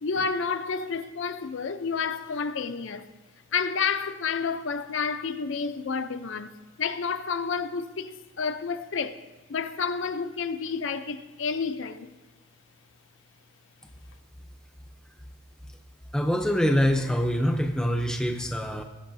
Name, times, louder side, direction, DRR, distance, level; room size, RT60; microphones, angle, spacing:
voice 1, 0.0-3.1 3.5-9.2 9.5-12.1, left 5 dB, 60° left, 0.5 m, -30 dB
voice 2, 16.1-18.8, equal, 5° left, 0.5 m, -24 dB
19.0 x 6.9 x 2.7 m
head